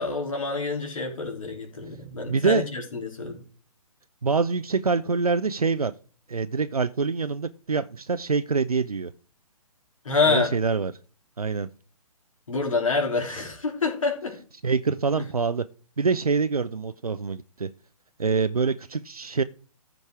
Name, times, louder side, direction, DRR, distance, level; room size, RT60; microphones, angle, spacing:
voice 1, 0.0-3.4 10.1-10.5 12.5-14.4, left 4 dB, 60° left, 3.5 m, -27 dB
voice 2, 2.3-2.7 4.2-5.9 6.3-9.1 10.3-10.9 11.4-11.7 14.6-15.7 16.0-17.7 18.2-19.4, right 4 dB, 80° right, 0.6 m, -25 dB
14.0 x 5.3 x 4.7 m
figure-of-eight pair, 130°, 19 cm